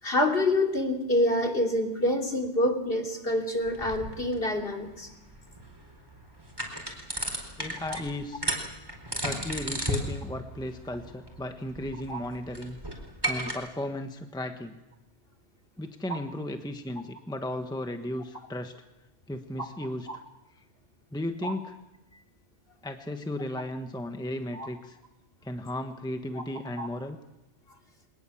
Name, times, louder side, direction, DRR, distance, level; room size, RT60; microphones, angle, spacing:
voice 1, 0.0-5.1 7.9-8.0 12.1-12.2 20.1-20.2 21.4-21.5 24.5-24.7 26.3-26.4 26.8-26.9, left 1 dB, 50° left, 2 dB, 3.2 m, -27 dB
sound 1, 3.6-13.5, right 1 dB, 20° right, 4.4 m, -35 dB
voice 2, 7.6-8.4 9.1-12.8 13.3-14.8 15.8-18.7 19.3-20.1 21.1-21.7 22.8-25.0 25.4-27.2, left 1 dB, 5° left, 6 dB, 1.2 m, -35 dB
24.5 x 19.5 x 7.2 m, 0.97 s
omnidirectional pair, 1.2 m